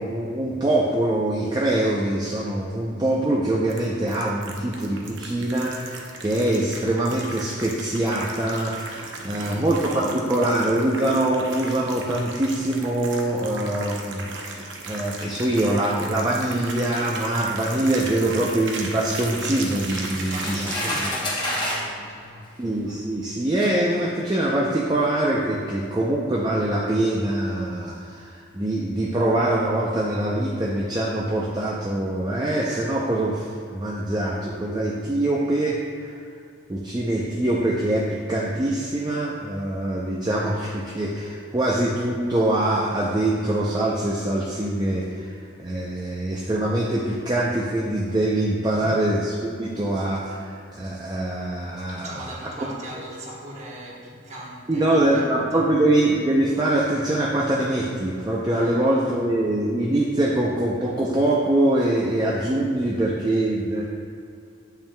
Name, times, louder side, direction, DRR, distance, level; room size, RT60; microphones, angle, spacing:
voice 1, 0.0-21.0 22.6-36.1 36.7-45.3 45.6-52.1 54.7-63.8, right 1 dB, 20° right, -4 dB, 0.4 m, -24 dB
sound 1, 3.7-21.1, right 3 dB, 65° right, 0.7 m, -37 dB
voice 2, 9.2-10.3 20.0-22.6 51.9-55.7 58.5-59.2, right 1 dB, 35° right, -4 dB, 1.1 m, -39 dB
Electric Sparks Railway A, 19.7-21.9 22.9-23.0 23.6-23.8, left 1 dB, 20° left, 0.9 m, -29 dB
8.8 x 5.7 x 2.2 m, 2.4 s
head